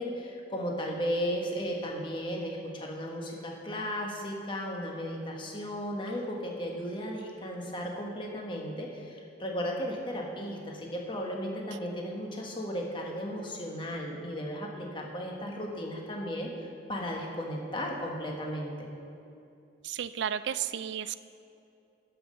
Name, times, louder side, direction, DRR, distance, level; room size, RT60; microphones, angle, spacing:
voice 1, 0.0-18.7, equal, 25° left, 0 dB, 1.2 m, -35 dB
voice 2, 19.8-21.2, right 9 dB, 65° right, 14 dB, 0.3 m, -33 dB
13.0 x 5.6 x 5.1 m, 2.6 s
head